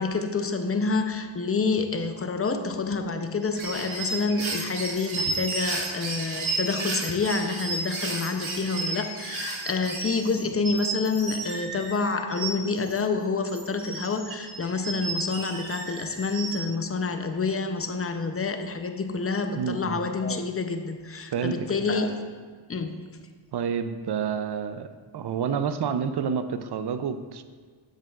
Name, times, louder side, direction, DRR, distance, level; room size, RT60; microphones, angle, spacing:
voice 1, 0.0-22.2 22.7-23.0, left 4 dB, 30° left, 7 dB, 0.6 m, -28 dB
sound 1, 3.4-13.0 13.5-16.6, right 3 dB, 75° right, 1.3 m, -33 dB
voice 2, 19.6-20.1 21.3-21.9 23.5-27.4, right 7 dB, 55° right, 10 dB, 0.5 m, -29 dB
7.5 x 7.4 x 2.4 m, 1.5 s
cardioid pair, 60°, 48 cm